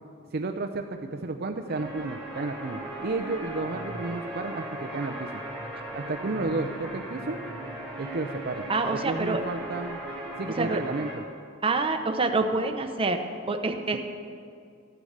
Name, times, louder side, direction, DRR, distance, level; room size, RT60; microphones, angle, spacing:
voice 1, 0.3-5.4 5.9-7.4 8.0-10.0 10.4-11.2 13.9-14.0, right 3 dB, 50° right, 5 dB, 0.6 m, -32 dB
sound 1, 1.7-11.1, right 1 dB, 5° left, 3.3 m, -37 dB
voice 2, 8.7-9.4 10.6-10.8 11.6-13.2 13.5-14.0, right 3 dB, 25° right, 5 dB, 0.9 m, -26 dB
14.0 x 9.6 x 6.6 m, 2.3 s
head